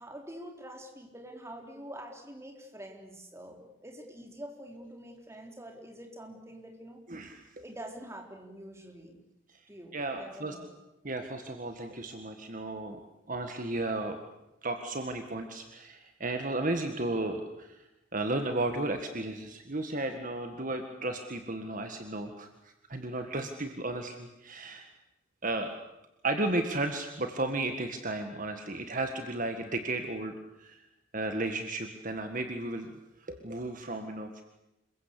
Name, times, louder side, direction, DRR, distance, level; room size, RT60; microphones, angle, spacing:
voice 1, 0.0-7.0 7.6-9.2 9.7-10.7, right 1 dB, 15° right, 2 dB, 4.1 m, -46 dB
voice 2, 7.1-7.5 9.9-10.6 11.0-13.0 13.3-14.2 14.6-17.8 18.1-24.9 25.4-25.7 26.2-30.9 31.1-32.9 33.2-34.3, right 2 dB, 40° right, 6 dB, 1.8 m, -34 dB
27.5 x 23.0 x 8.5 m, 0.94 s
head